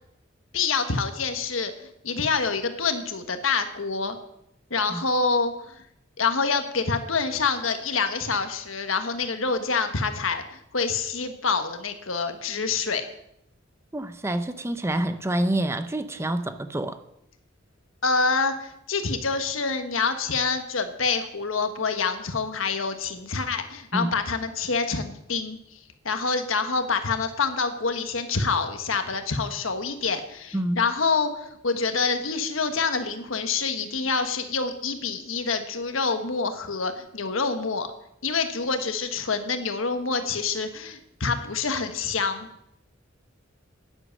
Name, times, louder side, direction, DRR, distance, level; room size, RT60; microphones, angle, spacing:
voice 1, 0.5-4.2 4.7-5.8 6.2-13.0 18.0-37.9 38.2-42.5, left 4 dB, 90° left, 7 dB, 1.4 m, -27 dB
voice 2, 13.9-17.0 23.9-24.1 30.5-30.8, right 1 dB, 15° right, 10 dB, 0.6 m, -27 dB
10.5 x 9.9 x 7.6 m, 0.79 s
head